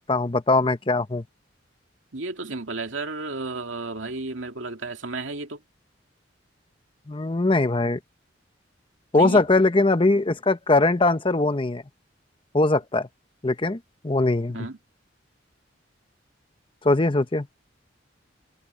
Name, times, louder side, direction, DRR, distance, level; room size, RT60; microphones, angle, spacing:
voice 1, 0.1-1.2 7.1-8.0 9.1-11.8 12.5-13.1 13.4-13.8 14.0-14.7 16.8-17.5, left 2 dB, 25° left, 0.9 m, -21 dB
voice 2, 2.1-5.6 9.1-9.5 14.5-14.8, right 3 dB, 85° right, 2.5 m, -32 dB
head